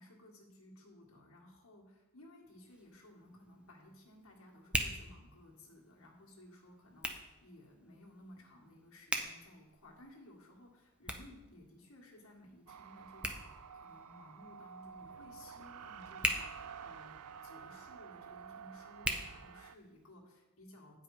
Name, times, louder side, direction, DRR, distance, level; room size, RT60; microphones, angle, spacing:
voice 1, 0.0-21.0, left 1 dB, 65° left, -2 dB, 1.8 m, -57 dB
Hands, 2.5-20.1, right 1 dB, 5° right, 0.5 m, -44 dB
sound 1, 12.7-19.8, right 7 dB, 85° right, 0.4 m, -51 dB
8.7 x 5.3 x 4.8 m, 1.1 s
head